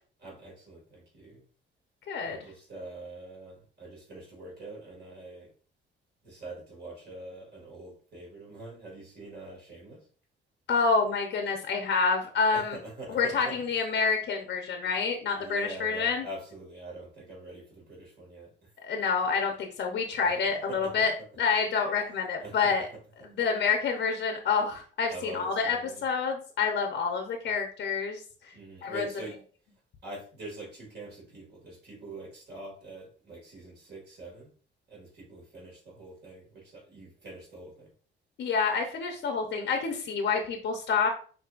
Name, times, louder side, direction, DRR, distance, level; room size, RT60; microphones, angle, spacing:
voice 1, 0.2-1.4 2.2-5.5 6.2-10.0 12.5-13.6 15.3-18.5 20.2-20.3 20.7-21.1 22.4-22.7 25.1-26.0 28.5-29.3 30.0-34.5 34.9-37.9, right 2 dB, 55° right, -2 dB, 2.2 m, -44 dB
voice 2, 2.1-2.4 10.7-12.8 13.1-16.3 18.8-21.1 21.4-22.9 23.2-25.8 26.0-28.2 28.5-28.6 28.8-29.0 38.4-41.1, left 5 dB, 65° left, 3 dB, 0.8 m, -28 dB
6.1 x 2.8 x 2.5 m, 0.41 s
cardioid pair, 90°, 20 cm